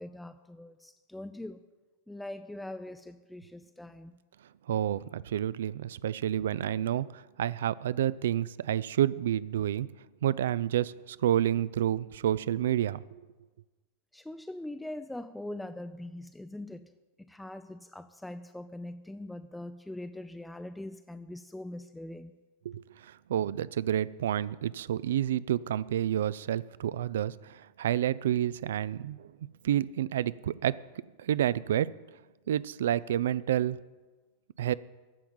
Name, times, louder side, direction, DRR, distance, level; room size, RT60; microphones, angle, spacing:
voice 1, 0.0-1.6 2.1-4.1 14.1-16.9 17.2-22.3, left 1 dB, 5° left, 0.5 m, -42 dB
voice 2, 4.7-9.9 10.2-13.0 22.6-29.3 29.6-30.8 31.2-31.9 32.5-33.8 34.6-34.7, right 11 dB, 60° right, 0.4 m, -29 dB
15.0 x 5.8 x 8.8 m
figure-of-eight pair, 90°, 0 cm